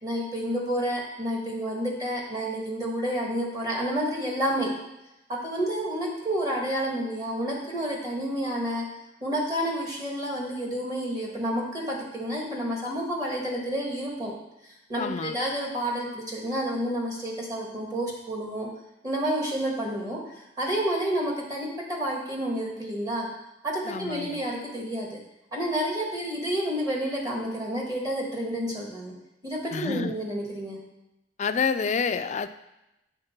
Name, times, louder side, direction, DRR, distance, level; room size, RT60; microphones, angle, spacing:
voice 1, 0.0-4.7 5.3-8.8 9.2-14.3 14.6-18.7 19.0-23.3 23.6-25.1 25.5-29.1 29.4-30.8, equal, 20° right, -2 dB, 1.5 m, -30 dB
voice 2, 15.0-15.3 23.9-24.4 29.7-30.1 31.4-32.5, left 5 dB, 40° left, 10 dB, 0.3 m, -28 dB
7.9 x 3.7 x 5.8 m, 0.92 s
head